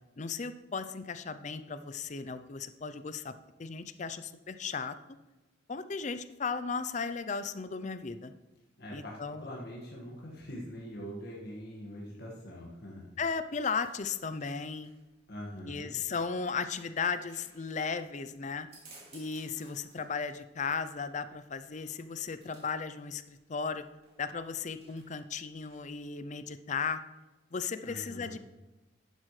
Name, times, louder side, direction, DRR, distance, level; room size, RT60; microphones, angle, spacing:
voice 1, 0.2-3.3 3.6-4.9 5.7-8.3 8.9-9.5 13.2-14.9 15.7-18.7 19.1-23.8 24.2-27.0 27.5-28.4, left 5 dB, 35° left, 11 dB, 0.5 m, -36 dB
voice 2, 8.8-13.2 15.3-15.9 27.8-28.4, equal, 55° left, -4 dB, 1.7 m, -43 dB
sound 1, 13.7-26.1, right 3 dB, 30° right, 2.5 m, -61 dB
11.0 x 9.9 x 3.2 m, 1.1 s
head